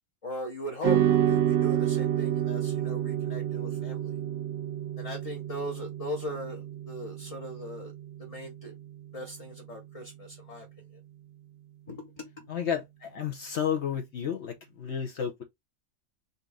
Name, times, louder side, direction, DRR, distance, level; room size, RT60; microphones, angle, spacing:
voice 1, 0.2-4.1 5.0-7.9 8.2-8.7 9.1-10.7 11.9-12.4, equal, 30° left, 0.8 m, -39 dB
sound 1, 0.8-9.4, right 11 dB, 60° right, 0.7 m, -29 dB
voice 2, 12.5-15.4, left 8 dB, 60° left, 0.9 m, -32 dB
4.1 x 2.6 x 3.4 m
omnidirectional pair, 1.4 m